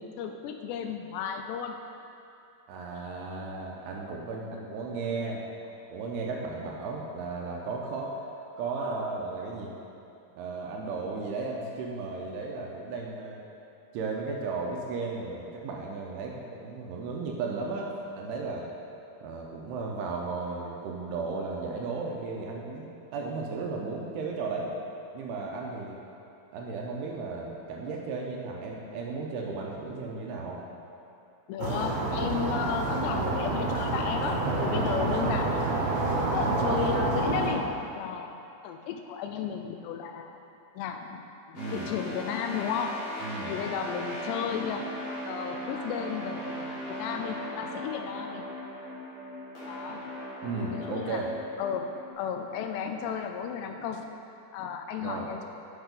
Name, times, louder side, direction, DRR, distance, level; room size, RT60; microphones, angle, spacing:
voice 1, 0.0-1.8 31.5-35.7 36.3-38.4 38.6-40.4 40.8-41.2 41.5-43.1 43.5-44.9 45.3-48.5 49.6-50.1 50.5-51.2 51.6-54.1 54.5-55.5, left 7 dB, 85° left, 5 dB, 2.6 m, -34 dB
voice 2, 2.7-5.5 5.9-8.1 8.6-9.7 10.4-13.4 13.9-17.9 18.2-18.7 19.2-24.7 25.1-26.0 26.5-30.6 41.6-41.9 43.2-43.5 50.4-51.3 55.0-55.3, right 4 dB, 80° right, -1 dB, 2.6 m, -35 dB
sound 1, 31.6-37.5, right 2 dB, 65° right, 2.0 m, -28 dB
sound 2, 41.5-52.1, equal, 45° left, 3.1 m, -38 dB
8.1 x 6.4 x 5.3 m, 2.7 s
omnidirectional pair, 4.9 m